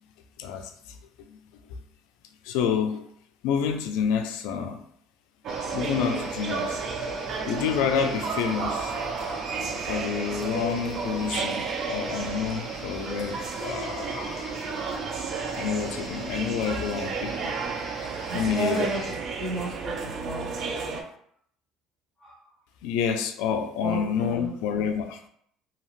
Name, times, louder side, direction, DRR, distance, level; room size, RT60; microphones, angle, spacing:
voice 1, 0.4-1.0 1.3-1.4 2.4-3.0 3.4-4.8 5.7-6.8 7.4-9.0 9.9-14.6 15.5-17.5 18.3-18.9 22.8-25.2, left 7 dB, 85° left, 6 dB, 0.3 m, -28 dB
sound 1, 5.4-21.0, right 5 dB, 45° right, 0.4 m, -32 dB
sound 2, 5.5-19.2, left 2 dB, 25° left, 1.2 m, -44 dB
voice 2, 15.6-16.0 18.3-21.0 22.2-22.5 23.8-24.5, right 2 dB, 15° right, -7 dB, 1.5 m, -34 dB
2.7 x 2.4 x 3.1 m, 0.66 s
cardioid pair, 140°, 0 cm